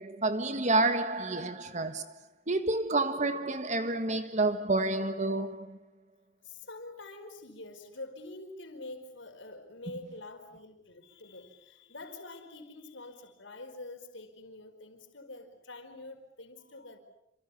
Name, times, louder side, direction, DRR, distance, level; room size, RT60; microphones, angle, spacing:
voice 1, 0.0-2.1 2.5-5.8, right 2 dB, 35° right, 1.6 m, -29 dB
voice 2, 6.4-17.0, left 2 dB, 70° left, 4.7 m, -46 dB
28.0 x 26.5 x 7.1 m
head